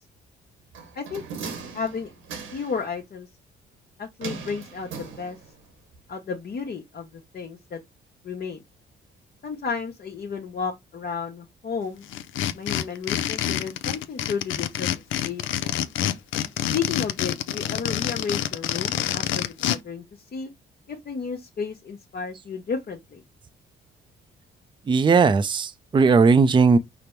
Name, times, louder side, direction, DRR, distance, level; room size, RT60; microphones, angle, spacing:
sound 1, 0.7-2.8 4.2-5.6 5.9-6.0, right 5 dB, 90° right, 1.3 m, -38 dB
voice 1, 1.7-2.1 2.5-3.3 4.0-5.4 6.1-7.8 8.2-8.6 9.4-12.1 12.5-15.8 16.7-20.0 20.3-20.5 20.9-23.2, left 5 dB, 50° left, 1.0 m, -32 dB
sound 2, 12.1-19.8, left 11 dB, 75° left, 0.5 m, -27 dB
voice 2, 24.9-26.8, right 4 dB, 25° right, 0.4 m, -17 dB
5.1 x 2.0 x 4.4 m
cardioid pair, 90°, 20 cm